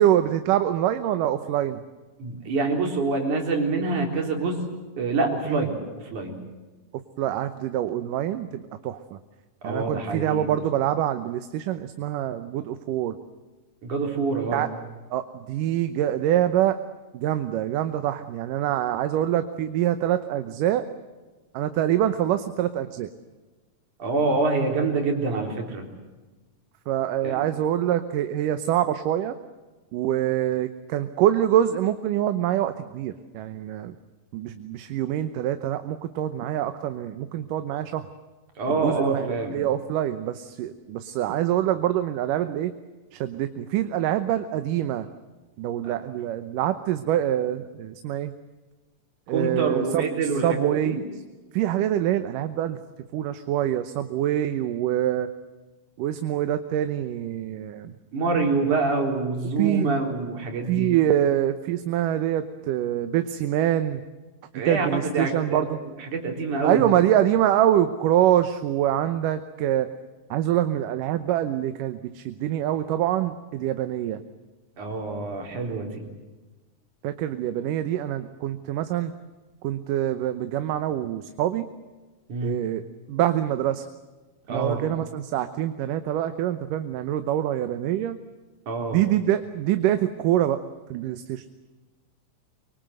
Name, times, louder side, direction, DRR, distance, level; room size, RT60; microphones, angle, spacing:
voice 1, 0.0-1.8 5.5-5.7 7.2-9.0 9.6-13.2 14.5-14.7 15.1-16.8 17.1-20.9 21.5-23.1 26.9-29.4 29.9-34.0 34.3-38.1 38.7-42.7 43.1-45.1 45.6-48.3 49.3-50.1 50.4-51.0 51.5-52.8 53.1-55.3 56.0-57.9 59.6-59.9 60.7-64.0 64.7-65.8 66.6-69.9 70.3-74.2 77.0-79.1 79.6-81.7 82.4-82.8 83.1-83.8 84.5-88.2 88.9-90.6 90.9-91.4, right 11 dB, 80° right, 10 dB, 2.6 m, -25 dB
voice 2, 2.2-4.6 5.0-5.8 6.1-6.4 9.6-10.5 13.8-14.6 24.0-25.9 27.2-27.4 38.6-39.6 45.8-45.9 49.3-51.0 58.1-60.9 64.5-65.7 66.1-66.9 74.8-76.0 82.3-82.6 84.5-84.8 88.7-89.0, right 3 dB, 65° right, 2 dB, 5.4 m, -26 dB
25.0 x 24.0 x 7.9 m, 1.2 s
omnidirectional pair, 3.7 m